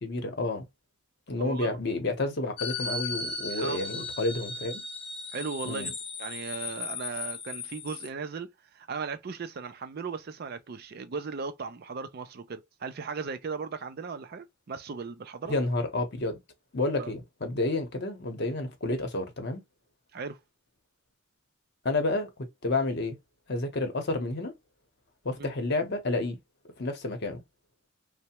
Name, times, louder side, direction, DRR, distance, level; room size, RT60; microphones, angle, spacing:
voice 1, 0.0-0.7 1.3-4.8 5.6-5.9 15.4-16.4 16.7-19.6 21.8-22.3 22.6-23.2 23.5-24.5 25.2-26.4 26.8-27.4, left 2 dB, 55° left, 0.8 m, -30 dB
voice 2, 1.4-1.8 3.5-3.8 5.3-15.5 17.0-17.1 20.1-20.4 25.4-25.5, right 5 dB, 50° right, 0.4 m, -37 dB
sound 1, 2.6-8.1, left 4 dB, 25° left, 0.7 m, -36 dB
3.2 x 2.1 x 2.8 m
head